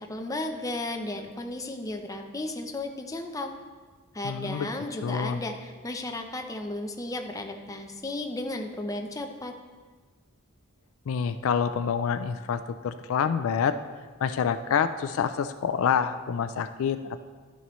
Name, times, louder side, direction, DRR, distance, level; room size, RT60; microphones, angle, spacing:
voice 1, 0.0-3.5 4.1-9.5, left 2 dB, 15° left, 4 dB, 0.6 m, -34 dB
voice 2, 4.2-4.7 5.0-5.4 11.1-13.7 14.2-17.2, left 7 dB, 65° left, 10 dB, 0.3 m, -27 dB
12.0 x 7.0 x 3.1 m, 1.5 s
head